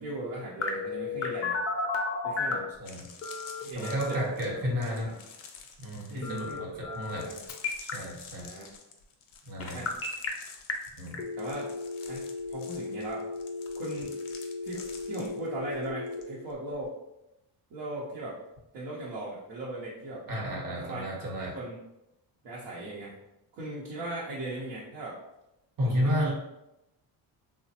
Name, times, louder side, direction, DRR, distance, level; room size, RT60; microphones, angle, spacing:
voice 1, 0.0-1.6 2.2-2.6 3.6-4.2 4.5-5.2 6.1-7.4 8.4-8.7 9.7-9.9 11.4-11.7 12.1-13.3 13.8-14.1 14.6-16.9 17.7-18.4 18.7-20.3 20.6-21.0 21.4-21.8 22.4-23.1 23.5-25.1 26.0-26.3, right 2 dB, 70° right, -6 dB, 0.8 m, -38 dB
Telephone, 0.6-2.7 3.2-4.2 6.2-7.2 7.5-7.9 9.6-10.3 10.7-10.8 11.1-16.2, left 4 dB, 30° left, 0.5 m, -34 dB
sound 1, 2.2-2.3 2.7-16.2 16.5-16.8, left 6 dB, 75° left, 0.6 m, -50 dB
voice 2, 2.5-3.0 3.7-5.1 5.8-7.3 7.8-8.5 9.5-9.8 11.0-11.2 20.3-21.6 25.8-26.3, equal, 45° right, -2 dB, 0.9 m, -32 dB
3.0 x 2.0 x 2.8 m, 0.89 s
cardioid pair, 110°, 46 cm